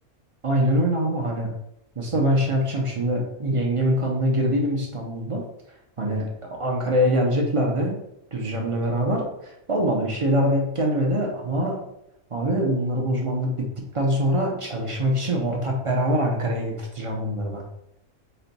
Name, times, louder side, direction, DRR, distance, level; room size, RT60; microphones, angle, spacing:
voice 1, 0.4-1.5 2.0-5.4 6.0-8.0 8.3-11.8 12.3-13.5 13.9-17.6, equal, 35° right, 0 dB, 0.5 m, -24 dB
4.3 x 2.2 x 3.9 m, 0.80 s
omnidirectional pair, 1.4 m